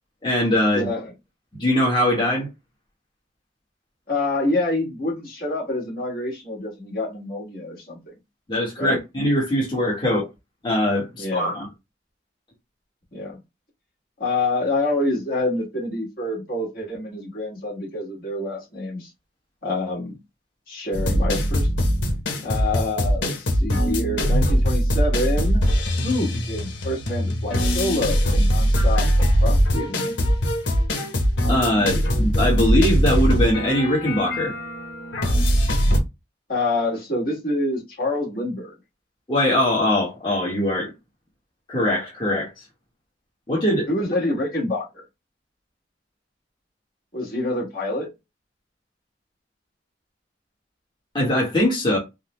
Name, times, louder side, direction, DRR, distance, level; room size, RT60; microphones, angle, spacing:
voice 1, 0.2-0.9 1.5-2.5 8.5-10.2 10.6-11.7 31.5-34.5 39.3-40.9 41.7-42.5 43.5-43.9 51.1-52.0, left 1 dB, 25° left, 1.1 m, -21 dB
voice 2, 0.7-1.1 4.1-8.1 8.8-9.0 10.1-10.2 11.2-11.6 13.1-13.4 14.2-19.1 19.6-20.2 20.7-21.7 22.4-25.7 26.0-30.1 36.5-38.7 43.9-45.0 47.1-48.1, left 2 dB, 50° left, 1.5 m, -27 dB
sound 1, 20.9-36.0, equal, 90° left, 0.8 m, -21 dB
3.7 x 2.1 x 3.0 m
head